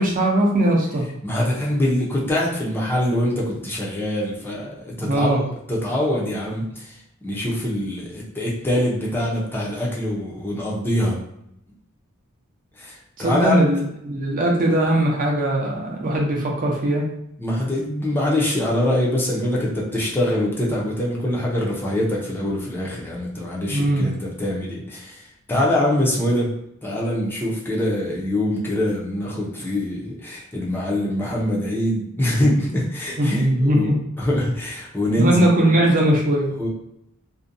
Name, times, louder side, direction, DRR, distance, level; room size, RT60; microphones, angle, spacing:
voice 1, 0.0-1.0 5.0-5.4 13.2-17.1 23.7-24.1 33.2-34.0 35.2-36.5, right 1 dB, 40° right, -1 dB, 0.5 m, -20 dB
voice 2, 1.2-5.4 5.7-7.0 7.2-11.2 12.8-13.6 17.4-26.5 26.8-33.9 34.2-35.5 36.6-36.7, left 1 dB, 10° left, -5 dB, 0.5 m, -24 dB
2.6 x 2.1 x 2.5 m, 0.77 s
head